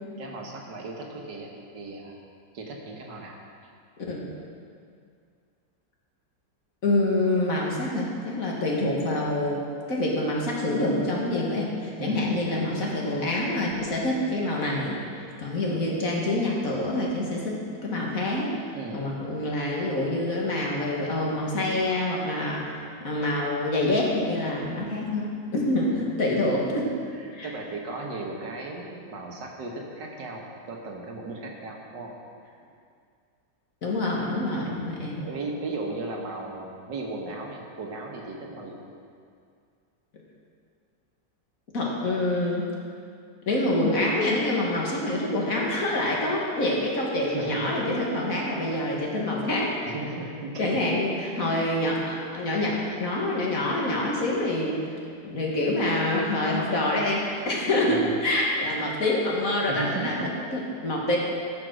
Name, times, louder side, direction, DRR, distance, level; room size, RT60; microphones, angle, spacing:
voice 1, 0.2-2.1 2.5-3.4 12.0-12.3 18.7-19.1 25.9-26.0 26.8-32.1 34.5-34.7 35.0-38.8 47.3-47.7 48.5-48.6 49.2-49.3 49.9-51.0 51.7-51.8 52.8-53.0 57.8-58.1 59.7-60.4, right 3 dB, 75° right, 0 dB, 2.0 m, -36 dB
voice 2, 6.8-9.6 9.9-18.5 18.9-26.9 27.3-27.5 33.8-35.2 41.7-42.7 43.4-49.7 50.6-61.2, left 1 dB, 50° left, -3 dB, 2.1 m, -26 dB
14.5 x 6.0 x 6.3 m, 2.3 s
omnidirectional pair, 1.9 m